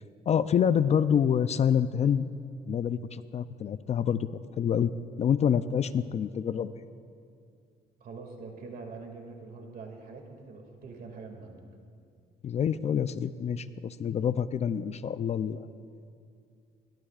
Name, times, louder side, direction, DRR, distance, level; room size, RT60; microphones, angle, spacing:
voice 1, 0.3-2.3 2.7-4.3 4.6-4.9 5.2-6.7 12.4-15.7, left 8 dB, 40° left, 13 dB, 0.4 m, -27 dB
voice 2, 8.0-11.6, right 4 dB, 60° right, 2 dB, 2.3 m, -44 dB
21.5 x 17.0 x 2.4 m, 2.4 s
cardioid pair, 110°, 17 cm